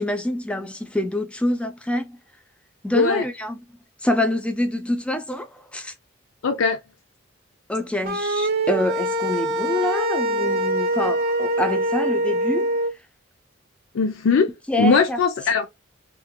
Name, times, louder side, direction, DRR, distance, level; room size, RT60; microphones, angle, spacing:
voice 1, 0.0-2.2 2.8-3.6 4.0-5.9 7.7-12.7 14.7-15.2, left 1 dB, 5° left, 0.4 m, -26 dB
voice 2, 2.9-3.2 6.4-6.8 13.9-14.5 14.8-15.7, left 5 dB, 75° left, 0.4 m, -20 dB
sound 1, 8.0-12.9, right 1 dB, 50° right, 0.5 m, -23 dB
3.0 x 2.4 x 2.3 m
head